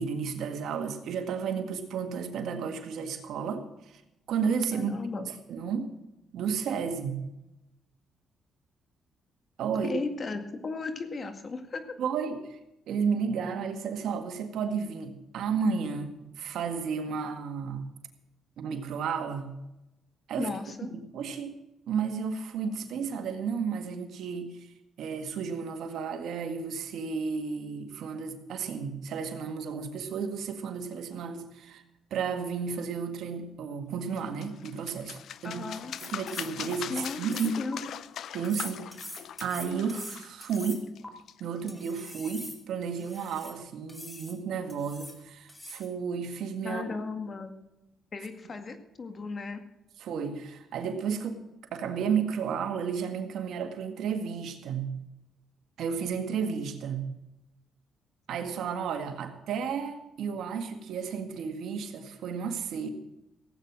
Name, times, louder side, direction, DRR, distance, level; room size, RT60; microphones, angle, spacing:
voice 1, 0.0-3.6 3.9-4.0 4.3-5.0 5.5-5.9 6.3-7.2 9.6-10.0 12.0-12.6 12.9-17.9 18.6-19.5 20.3-20.5 20.9-21.6 21.9-24.7 25.0-31.8 32.1-35.2 35.4-35.7 36.0-37.6 38.3-38.9 39.4-40.9 41.4-47.0 50.0-51.4 51.7-55.0 55.8-57.1 58.3-62.9, right 6 dB, 75° right, 6 dB, 1.9 m, -32 dB
voice 2, 4.7-5.3 9.8-11.8 20.4-20.9 35.4-35.9 36.9-37.8 46.6-47.5 48.1-49.6, left 3 dB, 40° left, 7 dB, 2.0 m, -36 dB
sound 1, 34.2-41.7, left 10 dB, 70° left, 0.6 m, -41 dB
sound 2, 35.7-37.8 38.4-41.1 41.7-43.6 43.9-44.4 44.7-45.2 45.5-45.9, left 1 dB, 10° left, 2.6 m, -44 dB
17.0 x 8.9 x 6.2 m, 0.91 s
cardioid pair, 90°, 0 cm